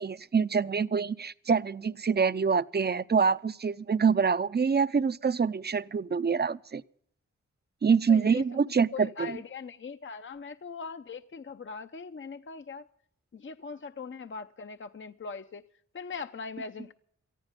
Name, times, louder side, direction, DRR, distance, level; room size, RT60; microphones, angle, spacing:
voice 1, 0.0-6.8 7.8-9.4, right 5 dB, 35° right, 0.6 m, -26 dB
voice 2, 8.1-8.6 8.9-12.9 13.3-15.7 15.9-16.9, left 5 dB, 45° left, 0.7 m, -40 dB
18.5 x 14.5 x 5.2 m
cardioid pair, 55°, 29 cm